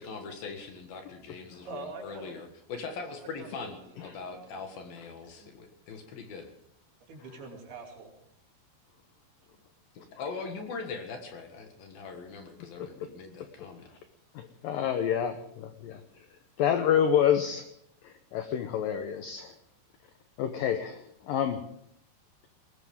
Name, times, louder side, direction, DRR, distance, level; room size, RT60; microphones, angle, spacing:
voice 1, 0.0-6.5 9.9-13.9, left 4 dB, 60° left, 5 dB, 3.1 m, -41 dB
voice 2, 1.7-2.5 3.4-4.7 5.4-5.5 7.1-8.1 9.5-9.6, right 3 dB, 60° right, 1 dB, 4.6 m, -45 dB
voice 3, 12.6-13.1 13.4-13.5 13.8-14.0 14.3-17.7 18.0-19.6 20.4-21.6, left 9 dB, 80° left, 8 dB, 2.1 m, -29 dB
21.0 x 18.5 x 3.7 m, 0.68 s
omnidirectional pair, 5.2 m